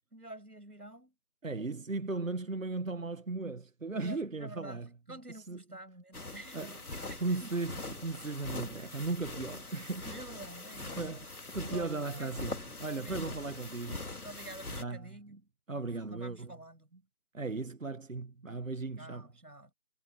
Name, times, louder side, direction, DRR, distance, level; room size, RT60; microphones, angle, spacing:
voice 1, 0.1-1.1 3.9-6.7 7.1-7.5 10.0-11.0 11.7-12.3 13.0-13.2 14.2-15.5 16.0-16.9 19.0-19.7, right 1 dB, 90° right, 7.5 m, -48 dB
voice 2, 1.4-4.9 5.4-5.6 6.5-6.8 7.2-10.1 11.0-11.3 11.5-14.1 14.7-15.2 15.7-16.5 17.3-19.3, right 3 dB, 60° right, 1.3 m, -37 dB
sound 1, 6.1-14.8, left 2 dB, 75° left, 2.5 m, -43 dB
figure-of-eight pair, 175°, 45 cm